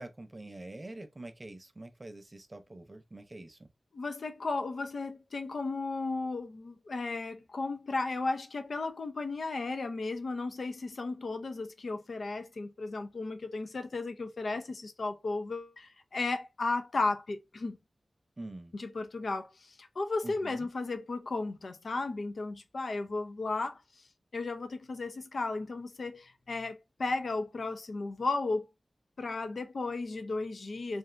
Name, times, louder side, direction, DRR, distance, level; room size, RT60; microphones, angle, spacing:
voice 1, 0.0-3.6 18.4-18.7 20.2-20.7, right 2 dB, 35° right, 0.6 m, -45 dB
voice 2, 3.9-17.8 18.7-24.0 24.3-28.7 29.2-31.0, left 3 dB, 75° left, 0.5 m, -34 dB
2.6 x 2.5 x 3.2 m
cardioid pair, 50°, 0 cm